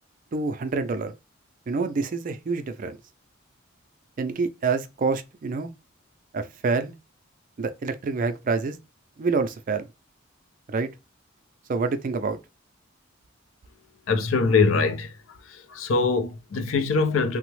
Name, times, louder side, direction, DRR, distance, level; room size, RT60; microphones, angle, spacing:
voice 1, 0.3-1.1 1.7-3.0 4.2-5.7 6.3-6.9 7.6-8.8 9.2-9.8 10.7-10.9 11.7-12.4, right 4 dB, 40° right, 0.4 m, -27 dB
voice 2, 14.1-15.1 15.4-17.4, left 4 dB, 80° left, 0.5 m, -23 dB
3.3 x 2.0 x 3.0 m
head